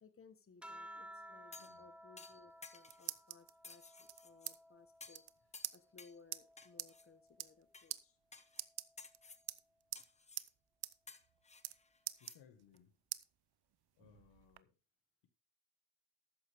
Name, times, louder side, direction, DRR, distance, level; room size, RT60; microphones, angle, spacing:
voice 1, 0.0-5.2 5.7-8.2, left 5 dB, 30° left, 1.2 m, -63 dB
sound 1, 0.6-5.4 5.9-7.6 8.8-9.3, equal, 5° right, 1.2 m, -57 dB
sound 2, 1.5-1.8 2.2-3.2 3.6-4.5 5.0-5.3 5.5-6.2 6.6-7.1 7.7-7.9 8.3-8.7 9.0-9.4 9.9-10.5 11.1-12.4 12.7-12.8, left 4 dB, 15° left, 0.9 m, -56 dB
voice 2, 1.6-1.9 12.2-13.0 14.0-14.7, left 8 dB, 85° left, 1.7 m, -65 dB
sound 3, 2.5-3.5 4.1-4.6 4.8-4.9 5.1-5.3 5.6-5.8 6.3-6.4 6.8-6.9 7.3-7.6 7.9-8.0 8.5-9.2 9.5-10.1 10.4-10.5 10.8-10.9 11.2-11.8 12.1-12.8 13.1-13.2 13.7-14.6, right 14 dB, 65° right, 0.7 m, -44 dB
12.5 x 9.3 x 3.5 m
cardioid pair, 110°, 42 cm